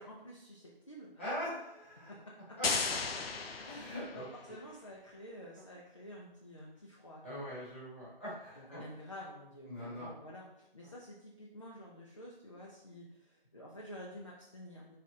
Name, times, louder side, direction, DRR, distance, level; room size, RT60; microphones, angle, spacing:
voice 1, 0.0-1.2 2.1-2.6 3.1-3.3 3.6-7.5 8.6-15.0, equal, 35° left, -3 dB, 0.5 m, -50 dB
voice 2, 1.2-2.1 2.6-2.7 3.7-4.2 7.2-8.8 9.7-10.1, equal, 15° left, -10 dB, 1.0 m, -41 dB
sound 1, 2.6-4.5, left 4 dB, 85° left, 0.6 m, -35 dB
4.1 x 3.2 x 3.6 m, 0.86 s
figure-of-eight pair, 175°, 29 cm